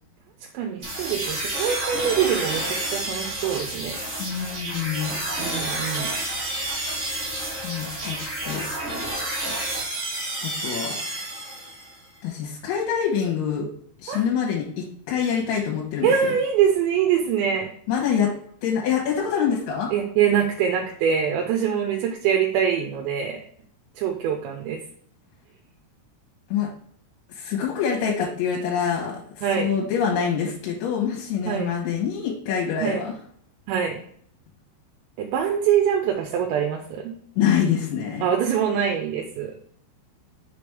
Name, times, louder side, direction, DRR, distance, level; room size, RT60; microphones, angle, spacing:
voice 1, 0.5-4.0 5.4-6.1 14.1-14.2 16.0-17.7 19.9-23.4 24.0-24.8 29.4-29.7 31.5-31.7 32.8-33.0 33.7-34.0 35.2-37.1 38.2-39.5, right 8 dB, 80° right, 3 dB, 2.7 m, -24 dB
sound 1, 0.8-12.0, right 1 dB, 40° right, 1.0 m, -30 dB
voice 2, 4.2-5.2 7.6-8.7 10.4-11.0 12.2-13.7 14.0-16.4 17.9-18.3 18.6-19.9 26.5-26.7 27.3-33.1 37.4-38.3, left 7 dB, 75° left, -2 dB, 3.3 m, -25 dB
6.8 x 5.1 x 3.3 m, 0.62 s
omnidirectional pair, 5.6 m